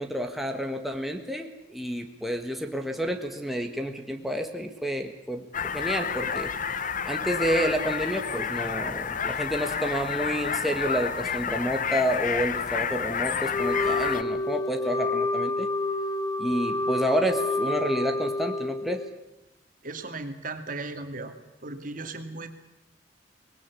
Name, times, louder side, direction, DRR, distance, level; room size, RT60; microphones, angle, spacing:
voice 1, 0.0-15.7 16.4-19.0, equal, ahead, 3 dB, 1.6 m, -29 dB
sound 1, 5.5-14.2, left 6 dB, 50° left, 1.0 m, -30 dB
Wind instrument woodwind instrument, 13.5-19.1, left 2 dB, 20° left, 1.5 m, -29 dB
voice 2, 19.8-21.4 21.6-22.5, right 3 dB, 50° right, 7 dB, 2.5 m, -36 dB
24.0 x 20.0 x 8.5 m, 0.89 s
head